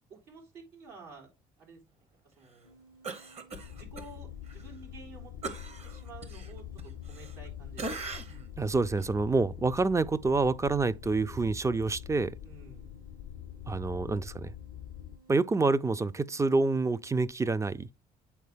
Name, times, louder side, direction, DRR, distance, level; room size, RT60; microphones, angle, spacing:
voice 1, 0.1-1.3 1.6-2.8 3.7-5.6 5.8-7.9 9.9-10.0 12.4-12.9, right 4 dB, 80° right, 3.4 m, -51 dB
sound 1, 2.6-17.4, right 3 dB, 55° right, 1.9 m, -60 dB
Cough, 3.0-4.1 4.5-4.6 5.4-7.5 7.8-8.5 9.0-9.1, right 3 dB, 40° right, 1.2 m, -40 dB
sound 2, 3.5-15.2, left 11 dB, 70° left, 0.4 m, -45 dB
voice 2, 8.6-12.3 13.7-14.5 15.3-17.9, right 3 dB, 20° right, 0.4 m, -27 dB
8.4 x 3.8 x 3.4 m
supercardioid pair, 70°, 17 cm